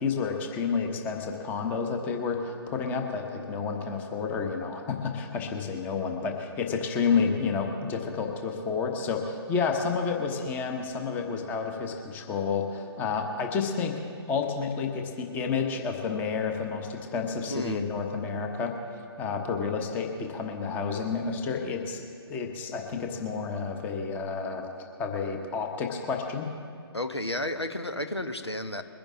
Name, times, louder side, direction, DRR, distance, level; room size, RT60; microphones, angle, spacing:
voice 1, 0.0-13.9 14.3-18.7 19.2-22.0 22.3-24.7 25.0-26.5, left 5 dB, 15° left, 4 dB, 1.0 m, -30 dB
voice 2, 17.5-17.9 26.9-28.8, left 1 dB, 90° left, 8 dB, 1.0 m, -32 dB
22.0 x 10.0 x 3.7 m, 2.3 s
figure-of-eight pair, 135°, 13 cm